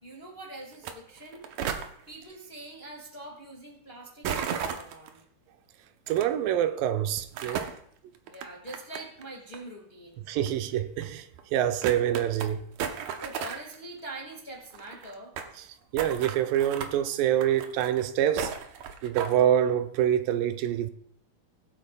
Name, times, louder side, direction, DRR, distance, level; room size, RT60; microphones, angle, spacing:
voice 1, 0.0-1.4 2.1-5.2 8.3-10.2 13.2-15.3, right 1 dB, 30° left, 1.0 m, -44 dB
sound 1, 0.7-0.9 1.2-1.9 4.2-5.1 6.1-6.2 7.2-7.8 8.3-9.2 9.5-9.6 10.5-10.6 11.0-11.1 11.4-11.5 11.8-12.5 12.8-13.8 14.0-14.1 14.3-14.4 14.6-15.5 16.0-16.9 17.4-18.0 18.4-19.4, right 7 dB, 70° right, 2.0 m, -34 dB
voice 2, 6.1-7.7 10.3-12.6 15.6-15.7 15.9-18.5 19.0-20.9, right 10 dB, 85° right, 2.3 m, -26 dB
21.0 x 8.4 x 2.3 m
omnidirectional pair, 4.0 m